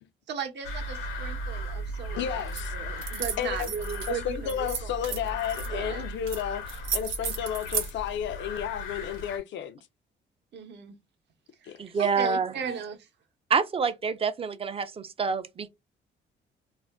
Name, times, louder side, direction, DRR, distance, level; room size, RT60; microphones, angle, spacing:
voice 1, 0.3-5.3 5.7-6.1 10.5-11.0 11.6-13.1, right 7 dB, 60° right, 0.8 m, -37 dB
sound 1, 0.6-9.4, left 1 dB, 90° left, 1.0 m, -37 dB
voice 2, 2.2-2.7 3.4-3.7 4.1-9.8 11.6-11.8, left 9 dB, 65° left, 0.5 m, -32 dB
sound 2, 2.5-2.7 3.0-4.1 4.5-5.7 6.3-6.4 6.7-7.9, right 7 dB, 85° right, 0.8 m, -33 dB
voice 3, 11.8-12.5 13.5-15.7, right 5 dB, 30° right, 0.4 m, -27 dB
2.5 x 2.1 x 3.3 m
cardioid pair, 90°, 20 cm